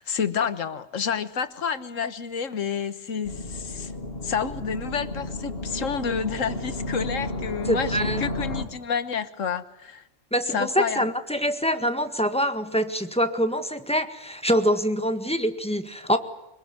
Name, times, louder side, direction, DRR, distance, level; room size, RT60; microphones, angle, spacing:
voice 1, 0.0-3.9 4.2-10.0 10.5-11.0, left 6 dB, 80° left, 12 dB, 1.7 m, -29 dB
sound 1, 3.2-8.7, left 2 dB, 50° left, 2.8 m, -32 dB
voice 2, 7.7-8.2 10.3-16.2, equal, 5° left, 8 dB, 1.6 m, -25 dB
24.5 x 22.0 x 9.6 m, 0.92 s
omnidirectional pair, 1.3 m